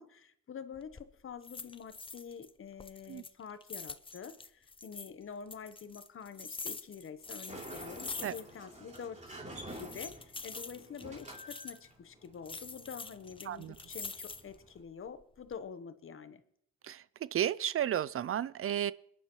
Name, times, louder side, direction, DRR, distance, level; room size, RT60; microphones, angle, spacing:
voice 1, 0.0-9.4 9.8-16.4, left 6 dB, 45° left, 12 dB, 1.0 m, -47 dB
sound 1, 0.7-1.1 1.4-2.5 2.8-5.1 5.5-8.7 8.9-9.0 9.6-11.8 12.4-14.6 15.1-15.6, left 4 dB, 15° left, 0.6 m, -45 dB
Sliding door, 7.2-14.8, right 1 dB, 25° right, 3.3 m, -50 dB
voice 2, 16.8-18.9, right 10 dB, 50° right, 19 dB, 0.4 m, -33 dB
22.0 x 10.0 x 3.1 m, 0.68 s
cardioid pair, 90°, 30 cm